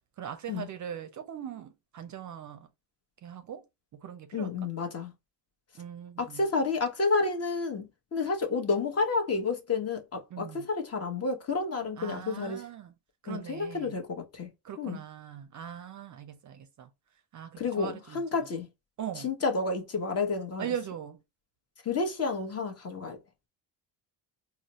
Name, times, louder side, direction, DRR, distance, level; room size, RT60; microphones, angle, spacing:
voice 1, 0.2-2.7 3.2-3.6 3.9-4.5 5.8-6.5 10.3-10.7 12.0-12.9 13.2-14.0 14.6-16.9 17.3-18.2 19.0-19.3 20.6-21.2, right 9 dB, 40° right, 0.5 m, -40 dB
voice 2, 4.3-5.1 6.2-12.6 13.3-14.5 14.8-15.0 17.6-18.7 19.2-20.7 21.8-23.2, left 4 dB, 35° left, 0.9 m, -30 dB
4.0 x 2.0 x 2.9 m
cardioid pair, 100°, 45 cm